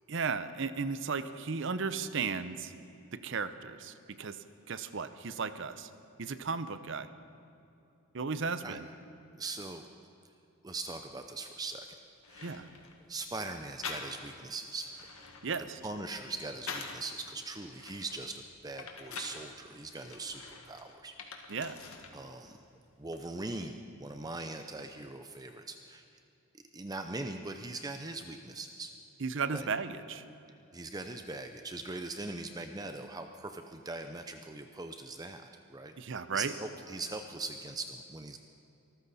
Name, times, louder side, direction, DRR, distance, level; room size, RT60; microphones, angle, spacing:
voice 1, 0.1-2.7 3.1-4.4 4.7-5.9 6.2-7.1 8.1-8.9 12.4-12.7 15.4-15.8 21.5-21.8 29.2-30.2 36.0-36.5, right 5 dB, 60° right, 12 dB, 0.7 m, -35 dB
voice 2, 9.4-9.8 10.6-11.9 12.3-12.7 13.1-15.3 15.8-21.1 21.5-21.6 22.1-22.6 23.0-26.0 26.5-28.9 29.5-29.7 30.7-35.9 36.3-38.4, right 3 dB, 20° right, 6 dB, 0.5 m, -41 dB
sound 1, 11.8-11.9 12.2-13.0 13.8-14.4 14.8-17.1 17.6-19.4 20.0-22.2 22.5-23.3, left 4 dB, 90° left, 1.8 m, -45 dB
24.5 x 14.0 x 4.1 m, 2.8 s
head